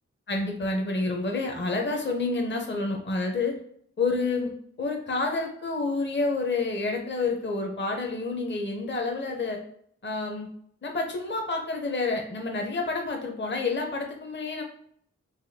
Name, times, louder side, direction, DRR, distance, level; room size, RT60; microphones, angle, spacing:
voice 1, 0.3-3.6 4.0-4.5 4.8-9.6 10.0-10.5 10.8-14.6, left 3 dB, 40° left, 2 dB, 0.6 m, -29 dB
4.8 x 2.2 x 2.7 m, 0.66 s
wide cardioid pair, 60°, 29 cm